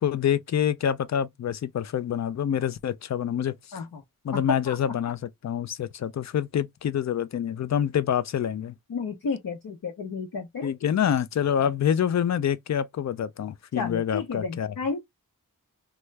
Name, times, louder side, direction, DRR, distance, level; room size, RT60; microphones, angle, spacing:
voice 1, 0.0-3.9 4.2-8.7 10.6-14.7, left 9 dB, 50° left, 0.5 m, -26 dB
voice 2, 3.7-4.0 4.3-4.8 8.9-10.7 13.7-15.0, left 4 dB, 70° left, 0.8 m, -32 dB
3.0 x 2.3 x 3.2 m
cardioid pair, 45°, 36 cm